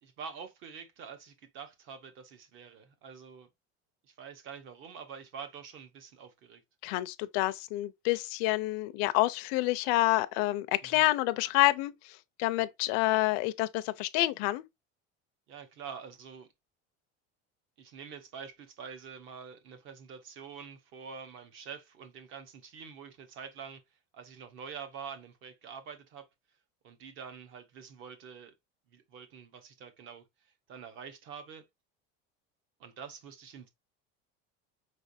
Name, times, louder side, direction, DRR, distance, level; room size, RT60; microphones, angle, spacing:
voice 1, 0.0-3.5 4.0-6.6 10.8-11.1 15.5-16.5 17.8-23.8 24.1-26.3 26.8-28.5 28.9-30.2 30.7-31.6 32.8-33.7, right 6 dB, 40° right, 1.0 m, -46 dB
voice 2, 6.8-11.9 12.4-14.6, left 18 dB, 60° left, 0.5 m, -28 dB
5.3 x 3.3 x 2.6 m
cardioid pair, 170°, 31 cm